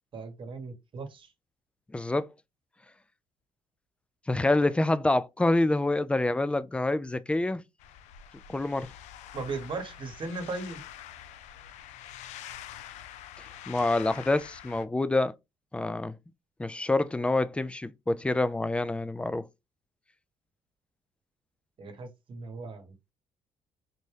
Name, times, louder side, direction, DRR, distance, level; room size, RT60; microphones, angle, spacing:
voice 1, 0.1-1.3 9.3-10.8 21.8-22.9, right 3 dB, 45° right, 1.1 m, -37 dB
voice 2, 1.9-2.3 4.3-7.6 8.5-8.9 13.4-15.3 15.7-16.2 16.6-19.5, left 2 dB, 10° left, 0.3 m, -27 dB
sound 1, 7.8-14.8, left 11 dB, 80° left, 0.4 m, -46 dB
4.1 x 2.2 x 3.2 m
supercardioid pair, 75°, 12 cm